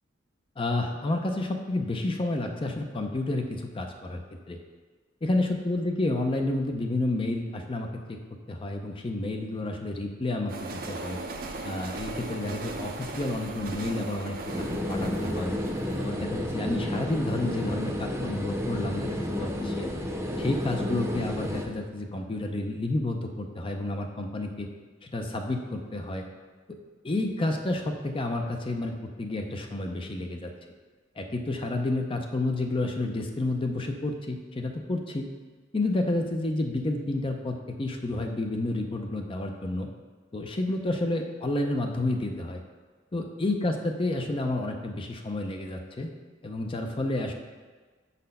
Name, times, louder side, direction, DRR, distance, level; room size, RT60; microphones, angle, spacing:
voice 1, 0.6-4.2 4.5-4.6 5.2-8.2 8.5-11.2 11.6-15.5 16.0-19.9 20.4-24.7 25.0-26.2 26.7-26.8 27.0-28.9 29.2-30.5 31.2-35.3 35.7-39.9 40.3-42.6 43.1-46.1 46.4-47.3, left 2 dB, 30° left, 3 dB, 0.5 m, -30 dB
sound 1, 10.5-17.5, right 2 dB, 50° right, 0.6 m, -38 dB
sound 2, 14.5-21.7, left 1 dB, 15° right, 0.7 m, -31 dB
6.5 x 4.1 x 5.4 m, 1.4 s
head